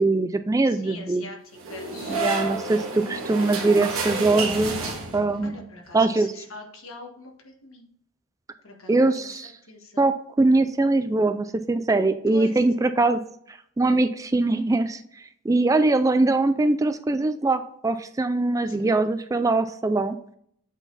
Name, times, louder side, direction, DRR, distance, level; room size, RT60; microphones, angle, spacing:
voice 1, 0.0-1.2 2.1-5.6 5.9-6.3 8.9-9.5 10.0-13.2 13.5-20.2, right 2 dB, 15° right, 10 dB, 0.3 m, -22 dB
voice 2, 0.6-1.4 1.7-2.2 5.4-7.9 8.6-9.4 9.7-10.1 12.3-12.7 18.7-19.0, left 3 dB, 75° left, 2 dB, 1.5 m, -43 dB
sound 1, 1.6-5.5, right 3 dB, 85° right, 1.5 m, -30 dB
8.2 x 4.0 x 4.0 m, 0.66 s
head